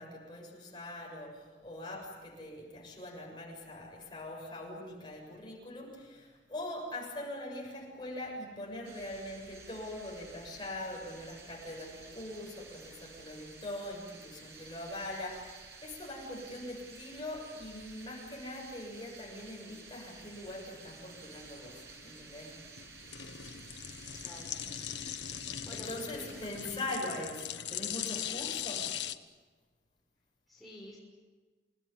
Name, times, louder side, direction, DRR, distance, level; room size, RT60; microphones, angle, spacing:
voice 1, 0.0-22.6 25.7-29.0, left 1 dB, 25° left, -2 dB, 7.4 m, -42 dB
sound 1, 8.8-26.8, right 4 dB, 65° right, 6.7 m, -52 dB
sound 2, 20.2-29.2, left 10 dB, 80° left, 1.2 m, -41 dB
voice 2, 24.2-24.8 25.6-26.5 30.5-31.0, left 1 dB, ahead, -5 dB, 6.1 m, -49 dB
29.0 x 19.5 x 9.9 m, 1.3 s
head